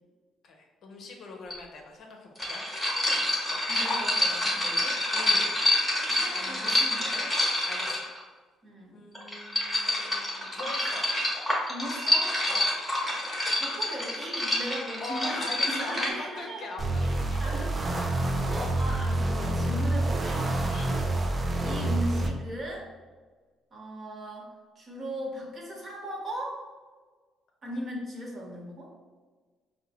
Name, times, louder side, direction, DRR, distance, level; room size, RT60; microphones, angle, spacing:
voice 1, 0.4-2.6 5.1-5.6 6.3-6.9 7.7-8.0 8.9-11.0 12.5-12.7 15.0-17.4 18.2-18.4 20.6-20.9, left 3 dB, 60° left, 1 dB, 0.6 m, -42 dB
sound 1, 1.5-1.6 2.3-8.2 9.1-16.1, left 1 dB, 5° left, 1.0 m, -27 dB
voice 2, 3.1-5.0 6.1-7.3 8.6-9.0 11.7-12.4 13.6-16.7 17.4-20.5 21.6-22.9 23.7-24.5 24.8-26.6 27.6-28.9, right 1 dB, 40° right, -3 dB, 1.1 m, -38 dB
sound 2, 16.8-22.3, right 1 dB, 25° right, 0.4 m, -27 dB
4.6 x 2.2 x 2.9 m, 1.4 s
cardioid pair, 115°, 0 cm